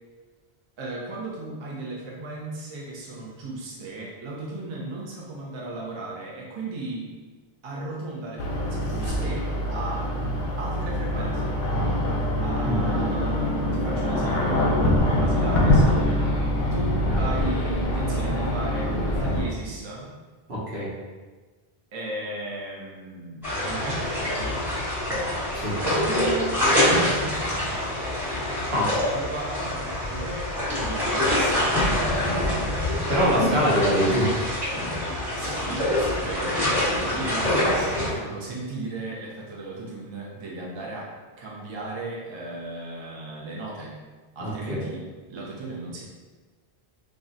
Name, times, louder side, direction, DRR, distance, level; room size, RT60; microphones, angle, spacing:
voice 1, 0.8-7.1 7.6-10.1 10.6-11.6 12.4-16.0 16.7-20.1 21.9-24.6 25.8-27.6 29.1-32.1 35.4-41.1 41.4-44.0 44.4-46.0, right 2 dB, 40° right, -4 dB, 0.4 m, -35 dB
sound 1, 8.4-19.4, left 1 dB, 55° left, 0.7 m, -24 dB
voice 2, 20.5-20.9 25.5-25.8 28.7-29.0 33.1-34.3 44.4-44.8, equal, 75° right, -6 dB, 1.1 m, -24 dB
sound 2, 23.4-38.1, left 1 dB, ahead, 1.0 m, -25 dB
2.4 x 2.1 x 3.8 m, 1.4 s
omnidirectional pair, 1.1 m